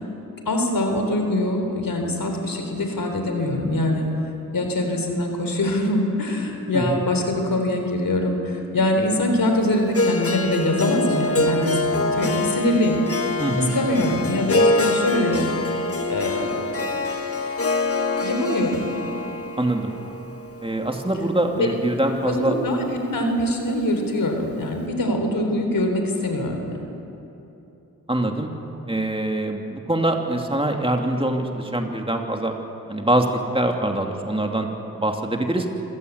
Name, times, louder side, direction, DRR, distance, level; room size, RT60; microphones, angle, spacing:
voice 1, 0.5-4.1 4.5-13.0 13.6-15.5 16.1-16.7 18.2-18.9 21.5-21.7 22.3-26.8, left 1 dB, 70° left, 4 dB, 3.9 m, -23 dB
Harp, 9.9-22.1, left 2 dB, 40° left, 1.9 m, -25 dB
voice 2, 13.4-13.7 19.6-19.9 20.6-22.6 28.1-28.5 28.9-32.5 32.9-34.7 34.9-35.7, right 1 dB, 15° right, 2 dB, 2.8 m, -24 dB
26.0 x 16.5 x 8.2 m, 2.9 s
cardioid pair, 50°, 35 cm